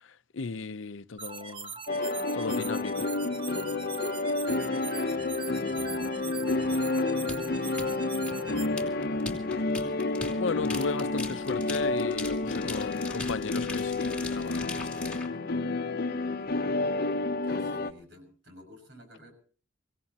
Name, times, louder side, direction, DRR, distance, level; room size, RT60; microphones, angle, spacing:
voice 1, 0.0-1.8 2.3-3.1 10.4-15.4, left 4 dB, 85° left, 0.6 m, -36 dB
sound 1, 1.2-8.7, right 6 dB, 25° right, 0.9 m, -41 dB
sound 2, 1.9-17.9, left 3 dB, 55° left, 0.8 m, -30 dB
voice 2, 5.0-7.7 8.1-10.4 17.0-19.3, left 1 dB, 65° right, 6.3 m, -52 dB
sound 3, 7.3-15.3, left 3 dB, 5° left, 2.7 m, -40 dB
25.0 x 17.0 x 2.9 m
head